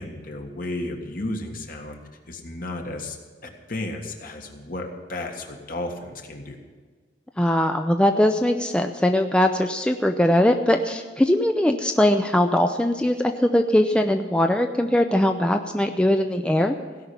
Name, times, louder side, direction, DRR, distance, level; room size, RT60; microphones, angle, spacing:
voice 1, 0.0-2.0 2.3-3.2 3.4-6.6, left 2 dB, 55° left, 3 dB, 1.6 m, -33 dB
voice 2, 7.4-16.8, left 1 dB, 5° left, 5 dB, 0.5 m, -21 dB
17.0 x 5.7 x 9.6 m, 1.5 s
head